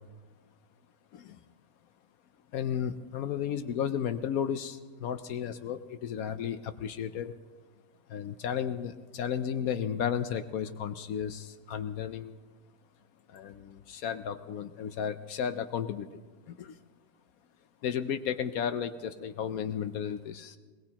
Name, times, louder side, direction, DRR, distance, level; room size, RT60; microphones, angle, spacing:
voice 1, 2.5-7.4 8.1-12.4 13.3-16.2 16.5-16.8 17.8-20.6, left 8 dB, 65° left, 10 dB, 1.0 m, -33 dB
21.0 x 20.5 x 2.9 m, 1.4 s
omnidirectional pair, 1.8 m